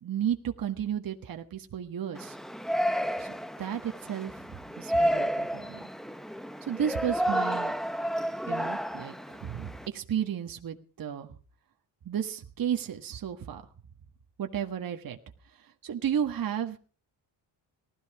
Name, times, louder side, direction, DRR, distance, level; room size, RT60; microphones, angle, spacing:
voice 1, 0.0-2.4 3.2-3.3 3.6-5.8 6.6-7.7 8.5-11.3 12.0-13.6 14.4-15.2 15.5-16.8, right 9 dB, 50° right, 5 dB, 1.7 m, -33 dB
Yell, 2.2-9.9, equal, ahead, 0.8 m, -31 dB
19.0 x 13.5 x 4.9 m, 0.38 s
cardioid pair, 140°, 45 cm